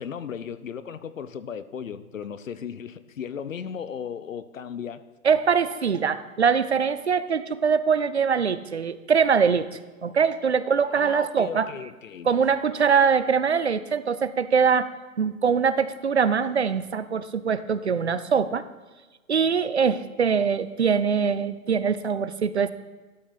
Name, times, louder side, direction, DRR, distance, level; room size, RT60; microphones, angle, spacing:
voice 1, 0.0-5.0 10.9-12.3, left 7 dB, 65° left, 14 dB, 0.7 m, -36 dB
voice 2, 5.2-9.7 10.0-11.7 12.2-14.9 15.2-18.6 19.3-22.7, right 6 dB, 50° right, 14 dB, 0.5 m, -23 dB
12.0 x 6.5 x 4.1 m, 1.2 s
hypercardioid pair, 180°, 43 cm